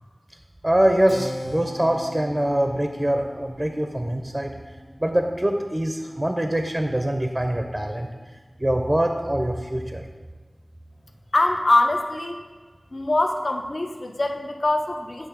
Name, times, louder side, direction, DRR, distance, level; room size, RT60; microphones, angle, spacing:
voice 1, 0.6-4.5 5.0-8.1 8.6-10.0, right 1 dB, 20° right, 4 dB, 0.5 m, -23 dB
Keyboard (musical), 1.1-7.2, left 1 dB, 20° left, 0.7 m, -40 dB
voice 2, 11.3-12.4 12.9-15.3, left 2 dB, 65° left, 3 dB, 0.6 m, -23 dB
8.5 x 3.1 x 6.0 m, 1.4 s
wide cardioid pair, 55°, 0 cm